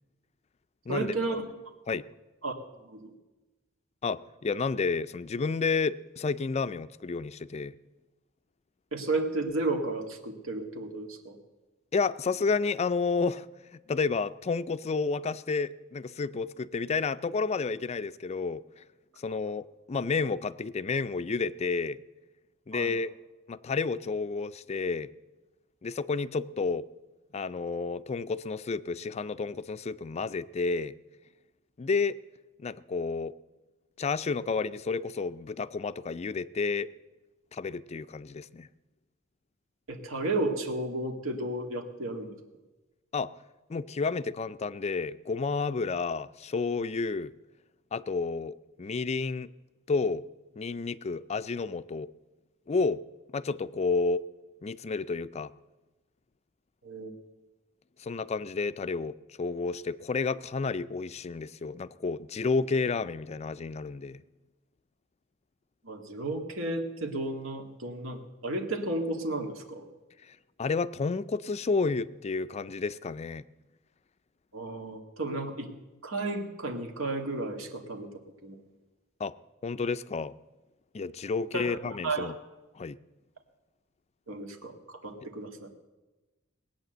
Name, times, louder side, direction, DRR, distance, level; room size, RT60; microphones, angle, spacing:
voice 1, 0.9-1.5 2.4-2.5 2.8-3.1 8.9-11.4 22.7-22.9 39.9-42.3 56.8-57.1 65.8-69.8 74.5-75.7 76.0-78.1 78.4-78.6 81.5-82.3 84.3-85.5, right 2 dB, 80° right, 3 dB, 2.0 m, -33 dB
voice 2, 4.0-7.7 11.9-13.5 13.7-18.6 19.2-22.0 22.7-23.1 23.5-25.1 25.8-26.9 27.3-30.9 31.8-32.2 32.6-33.3 34.0-36.9 37.5-38.7 43.1-43.3 43.7-47.3 47.9-49.5 49.9-50.3 50.6-52.1 52.7-53.0 53.3-54.3 54.6-55.5 58.0-64.2 70.3-73.4 79.2-79.3 79.6-80.3 80.9-82.3 82.8-83.0, left 4 dB, 30° left, 15 dB, 0.4 m, -31 dB
19.5 x 8.8 x 7.8 m, 1.1 s
head